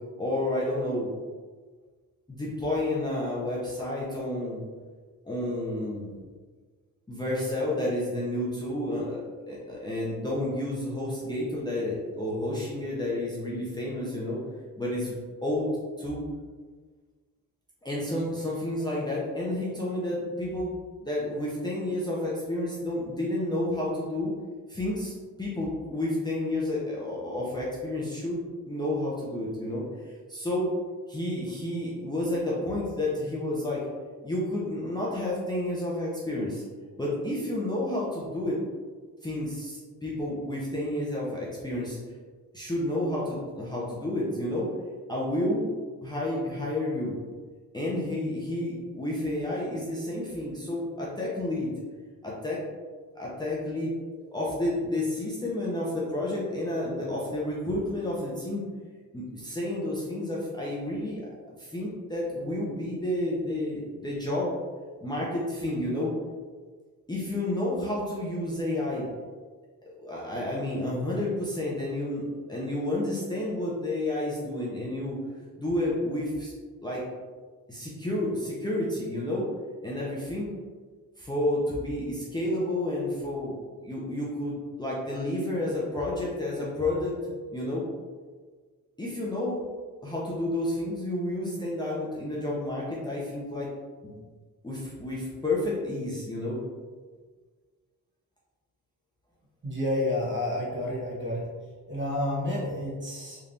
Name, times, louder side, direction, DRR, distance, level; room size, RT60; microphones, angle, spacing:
voice 1, 0.2-1.1 2.3-4.6 5.2-6.1 7.1-14.4 14.8-15.1 15.4-15.7 16.0-16.2 17.8-20.7 21.0-24.3 24.7-30.7 31.1-33.8 34.2-36.6 37.0-38.6 39.2-42.0 42.5-44.7 45.1-45.8 46.0-47.2 47.7-51.7 52.2-52.6 53.1-53.9 54.2-58.7 59.1-61.3 61.6-64.5 65.0-66.1 67.1-69.1 69.8-75.2 75.6-76.5 76.8-77.0 77.7-79.5 79.8-80.6 81.2-83.6 83.8-87.2 87.5-87.8 89.0-89.6 90.0-93.7 94.0-94.2 94.6-96.6, left 1 dB, 10° left, -7 dB, 0.6 m, -30 dB
voice 2, 99.6-101.5 101.9-103.4, left 1 dB, 30° right, -5 dB, 1.1 m, -30 dB
3.4 x 2.7 x 2.5 m, 1.5 s
cardioid pair, 85°, 37 cm